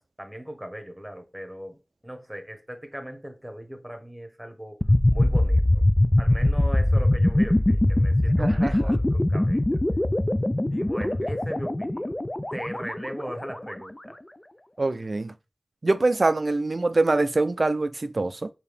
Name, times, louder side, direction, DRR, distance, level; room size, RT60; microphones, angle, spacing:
voice 1, 0.0-1.8 2.0-4.8 5.1-5.8 6.2-9.6 10.7-12.2 12.5-14.1, equal, 10° right, 1.1 m, -38 dB
sound 1, 4.8-13.7, left 1 dB, 25° left, 0.4 m, -22 dB
voice 2, 8.4-8.7 14.8-15.3 15.8-18.5, right 2 dB, 60° right, 0.4 m, -24 dB
4.8 x 2.8 x 3.4 m
wide cardioid pair, 50°, 0 cm